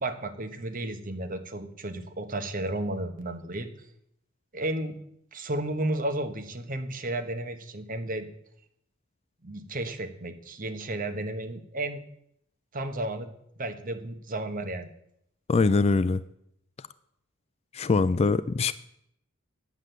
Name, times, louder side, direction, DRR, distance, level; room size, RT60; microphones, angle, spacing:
voice 1, 0.0-3.9 4.5-5.0 5.3-8.3 9.4-12.0 12.7-13.3 13.6-14.9, right 1 dB, 40° right, 7 dB, 1.1 m, -33 dB
voice 2, 15.5-16.2 17.7-18.7, left 4 dB, 30° left, 15 dB, 0.3 m, -23 dB
9.7 x 7.7 x 6.7 m, 0.74 s
head